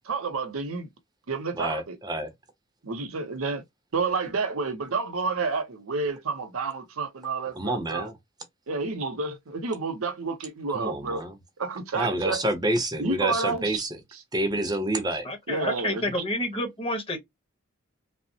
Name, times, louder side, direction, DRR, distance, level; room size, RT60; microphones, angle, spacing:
voice 1, 0.1-0.9 1.3-2.0 2.8-3.6 3.9-8.1 8.7-11.2 11.6-12.4 13.0-13.8 14.1-14.2 14.7-14.8 15.5-16.2, right 4 dB, 80° right, 0.7 m, -30 dB
voice 2, 1.6-2.3 7.6-8.1 10.7-11.3 12.0-13.9 14.3-15.3, right 1 dB, 20° right, 0.6 m, -28 dB
voice 3, 15.2-17.2, left 1 dB, 25° left, 1.0 m, -29 dB
3.2 x 2.0 x 2.6 m
head